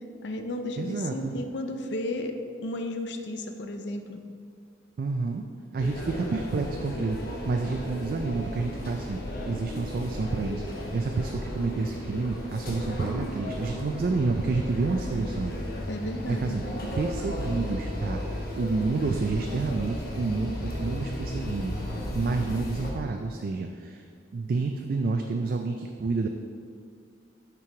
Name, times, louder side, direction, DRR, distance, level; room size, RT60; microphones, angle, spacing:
voice 1, 0.2-2.4 2.6-4.2 15.9-16.6, left 1 dB, 70° left, 6 dB, 0.5 m, -33 dB
voice 2, 0.8-1.4 5.0-5.4 5.7-7.2 7.5-9.2 9.5-15.5 16.3-21.7 22.1-24.1 24.3-26.3, right 3 dB, 50° right, 4 dB, 0.3 m, -29 dB
sound 1, 5.8-22.9, left 1 dB, 55° left, 1.1 m, -34 dB
5.9 x 4.6 x 4.8 m, 2.2 s
head